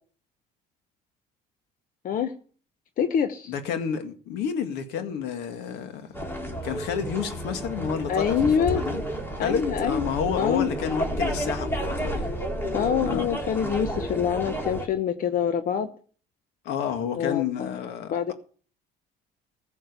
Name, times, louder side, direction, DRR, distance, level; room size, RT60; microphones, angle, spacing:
voice 1, 3.0-3.5 8.1-8.8 9.4-10.0 10.4-10.7 12.7-15.9 17.1-17.7 18.1-18.3, left 8 dB, 55° left, 1.0 m, -25 dB
voice 2, 3.5-6.1 6.6-9.0 9.4-12.3 13.0-13.4 16.6-18.3, left 7 dB, 85° left, 2.1 m, -30 dB
sound 1, 6.1-14.9, equal, 15° left, 2.7 m, -31 dB
15.5 x 6.5 x 6.8 m
cardioid pair, 110°, 17 cm